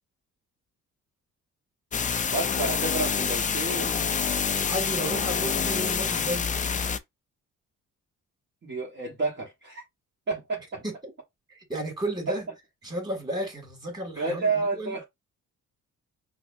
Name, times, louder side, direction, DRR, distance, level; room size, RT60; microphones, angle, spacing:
sound 1, 1.9-7.0, left 6 dB, 25° left, 0.4 m, -27 dB
voice 1, 2.3-3.9 8.6-9.8 10.3-10.8 12.3-12.4 14.2-15.0, right 3 dB, 35° right, 1.2 m, -30 dB
voice 2, 4.6-6.7 10.8-10.9 11.5-12.4 12.8-15.0, right 1 dB, 15° right, 2.2 m, -33 dB
5.7 x 2.1 x 2.5 m
cardioid pair, 90°, 30 cm